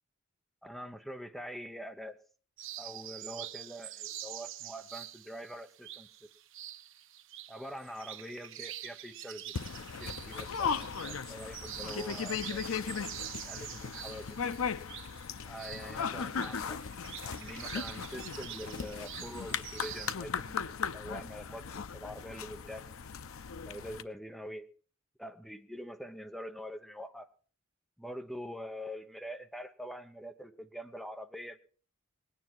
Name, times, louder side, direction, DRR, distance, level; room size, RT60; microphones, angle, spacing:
voice 1, 0.6-2.2 2.8-6.3 7.5-13.1 13.4-14.4 15.4-16.8 17.2-23.0 23.6-24.7 25.2-27.3 28.0-31.6, equal, ahead, 7 dB, 1.0 m, -45 dB
sound 1, 2.6-20.1, right 12 dB, 65° right, 0.8 m, -46 dB
sound 2, 9.5-24.0, left 6 dB, 85° left, 0.6 m, -37 dB
19.0 x 9.7 x 4.6 m, 0.41 s
head